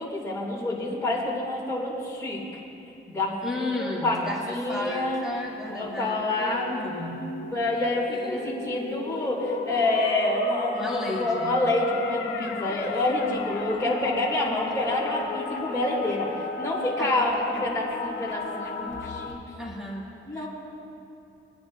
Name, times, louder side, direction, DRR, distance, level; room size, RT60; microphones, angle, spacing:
voice 1, 0.0-2.4 3.1-5.2 5.7-19.4 20.2-20.5, left 2 dB, 15° left, -6 dB, 2.6 m, -27 dB
voice 2, 3.4-7.3 8.1-8.8 10.7-11.6 12.3-12.6 13.6-14.3 17.0-17.3 19.6-20.5, left 2 dB, ahead, -5 dB, 2.7 m, -35 dB
sound 1, 4.8-19.4, left 4 dB, 70° left, 1.0 m, -36 dB
24.0 x 9.5 x 2.6 m, 2.8 s
cardioid pair, 95°, 20 cm